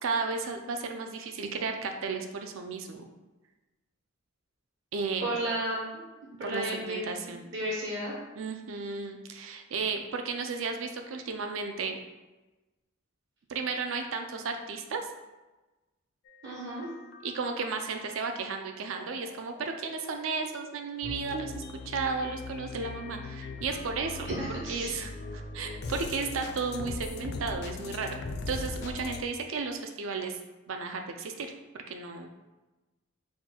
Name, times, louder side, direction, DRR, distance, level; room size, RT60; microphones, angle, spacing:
voice 1, 0.0-3.1 4.9-5.3 6.4-7.4 8.4-12.0 13.5-15.0 17.2-24.3 24.7-30.4 30.7-31.5 31.7-32.3, right 4 dB, 75° right, 5 dB, 0.4 m, -34 dB
voice 2, 5.2-5.8 6.2-8.2 16.4-16.9 24.4-24.9, right 1 dB, 60° right, -4 dB, 0.8 m, -33 dB
sound 1, 16.3-29.2, left 3 dB, 55° left, 0.3 m, -41 dB
4.3 x 2.3 x 4.3 m, 1.1 s
head